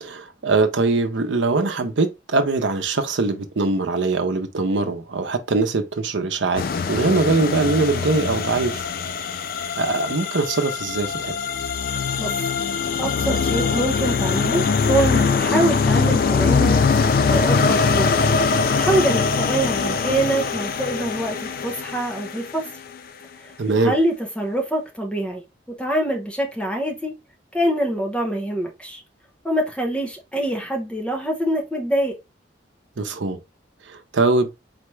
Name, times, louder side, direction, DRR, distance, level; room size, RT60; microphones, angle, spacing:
voice 1, 0.0-8.8 9.8-11.3 23.6-23.9 33.0-33.4 33.9-34.5, right 3 dB, 70° right, 0.7 m, -22 dB
sound 1, 6.6-22.7, left 5 dB, 45° left, 0.3 m, -22 dB
voice 2, 13.0-18.1 18.7-22.7 23.8-25.4 25.8-27.1 27.5-29.0 29.4-32.1, right 1 dB, 5° left, 0.8 m, -24 dB
4.2 x 3.3 x 3.2 m
head